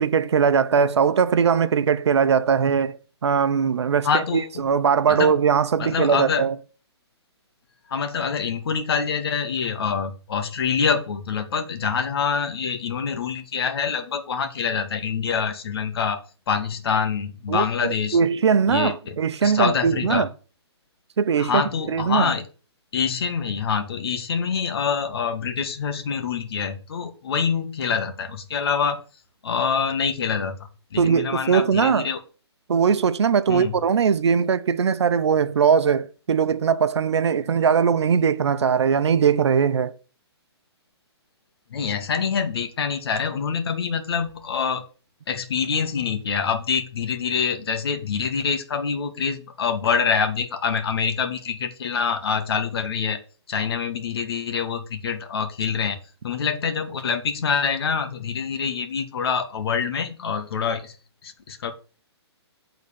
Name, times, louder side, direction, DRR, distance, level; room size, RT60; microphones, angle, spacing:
voice 1, 0.0-6.6 17.5-20.3 21.2-21.6 21.9-22.3 31.0-32.1 32.7-39.9, right 6 dB, 75° right, 0.8 m, -20 dB
voice 2, 4.0-4.5 5.1-5.3 5.8-6.5 7.9-16.2 16.5-18.2 18.7-19.1 19.4-20.3 21.4-22.4 22.9-29.0 29.4-30.6 30.9-32.2 33.5-33.7 41.7-44.8 45.3-53.2 53.5-56.0 56.2-60.9 61.2-61.7, left 6 dB, 60° left, 1.6 m, -25 dB
8.6 x 4.0 x 7.0 m
hypercardioid pair, 155°, 14 cm